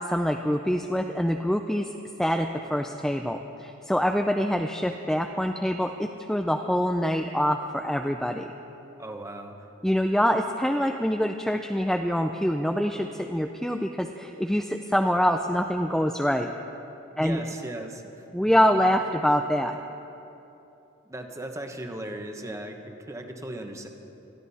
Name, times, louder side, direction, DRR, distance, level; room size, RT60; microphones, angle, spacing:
voice 1, 0.1-1.9 2.2-8.5 9.8-16.5 17.2-17.4 18.3-19.7, equal, ahead, 4 dB, 0.4 m, -25 dB
voice 2, 9.0-9.5 17.1-18.3 21.0-23.9, right 1 dB, 15° right, 4 dB, 1.1 m, -37 dB
22.0 x 14.0 x 4.2 m, 3.0 s
head